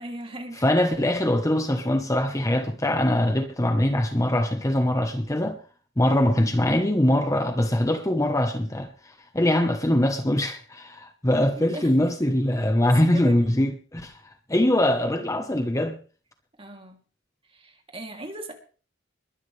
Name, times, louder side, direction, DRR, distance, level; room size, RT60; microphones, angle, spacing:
voice 1, 0.0-0.6 11.6-11.9 12.8-13.5 16.6-17.0 17.5-18.5, right 1 dB, 30° right, 3.0 m, -38 dB
voice 2, 0.6-5.6 6.0-8.9 9.3-14.2 14.5-16.0, left 1 dB, 15° left, 1.1 m, -22 dB
21.5 x 12.0 x 3.4 m
head